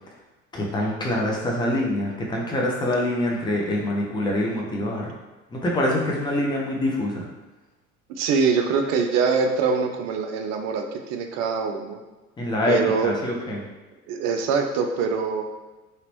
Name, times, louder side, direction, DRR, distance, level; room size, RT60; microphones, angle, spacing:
voice 1, 0.5-5.1 5.5-7.3 12.4-12.8 13.0-13.6, left 1 dB, 10° left, -2 dB, 0.6 m, -25 dB
voice 2, 8.1-12.0 12.7-13.1 14.1-15.5, right 5 dB, 40° right, 4 dB, 0.5 m, -24 dB
3.1 x 2.9 x 3.0 m, 1.2 s
figure-of-eight pair, 65°, 42 cm